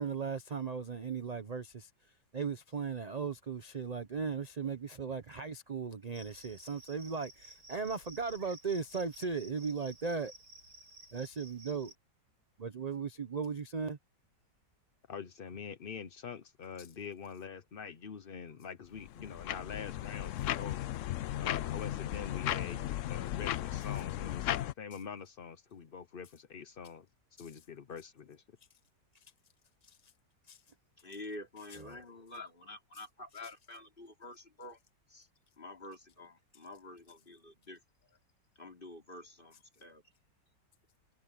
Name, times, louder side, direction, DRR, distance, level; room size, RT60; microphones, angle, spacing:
voice 1, 0.0-1.9 2.3-10.3 11.1-11.9 12.6-14.0 20.5-20.6 30.5-30.6 31.9-32.0, right 5 dB, 35° right, 0.6 m, -37 dB
Cricket, 6.1-11.9, right 2 dB, 70° right, 7.6 m, -54 dB
voice 2, 15.1-20.8 21.4-22.8 23.1-27.1 27.4-28.4, left 6 dB, 45° left, 0.7 m, -45 dB
sound 1, 18.9-24.7, left 13 dB, 85° left, 0.6 m, -36 dB
voice 3, 31.0-34.8 35.1-35.3 35.6-37.8 38.6-40.0, left 2 dB, 30° left, 3.8 m, -48 dB
omnidirectional pair, 1.9 m